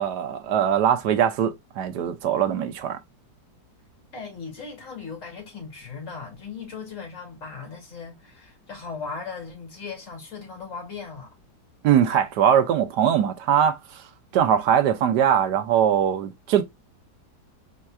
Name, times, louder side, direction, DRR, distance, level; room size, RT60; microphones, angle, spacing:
voice 1, 0.0-3.0 11.8-13.8 14.3-16.6, right 9 dB, 75° right, 1.3 m, -21 dB
voice 2, 4.1-11.3, left 5 dB, 45° left, 2.9 m, -38 dB
4.5 x 4.4 x 2.3 m
omnidirectional pair, 1.9 m